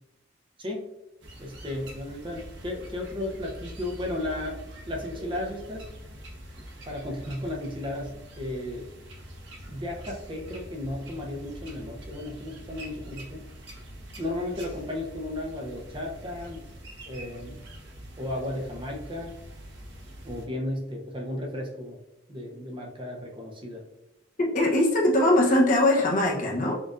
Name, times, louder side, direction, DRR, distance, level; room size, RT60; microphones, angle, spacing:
sound 1, 1.2-20.5, equal, 70° right, 1.1 m, -44 dB
voice 1, 1.4-4.6 4.9-5.9 6.9-8.9 9.7-13.4 14.2-16.6 17.0-17.6 18.2-19.3 20.2-22.0 22.3-23.8 24.6-24.7, left 1 dB, 25° right, 0 dB, 0.6 m, -34 dB
voice 2, 24.4-26.7, left 1 dB, 45° left, -2 dB, 0.8 m, -21 dB
6.2 x 2.5 x 2.5 m, 0.95 s
head